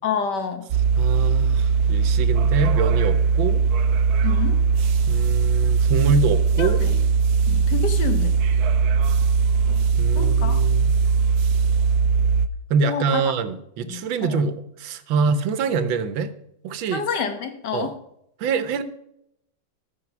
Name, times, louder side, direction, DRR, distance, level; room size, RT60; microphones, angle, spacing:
voice 1, 0.0-0.6 4.2-4.6 6.6-6.9 7.5-8.4 10.2-10.6 12.8-13.2 13.9-14.4 16.9-17.9, left 6 dB, 65° left, 8 dB, 1.7 m, -28 dB
sound 1, 0.7-12.5, right 5 dB, 65° right, 1.0 m, -20 dB
voice 2, 1.0-3.6 5.1-6.8 10.0-10.9 12.7-16.3 16.6-17.1 17.7-17.9 18.4-18.8, right 5 dB, 80° right, 12 dB, 1.6 m, -25 dB
14.0 x 6.5 x 6.0 m, 0.77 s
omnidirectional pair, 2.1 m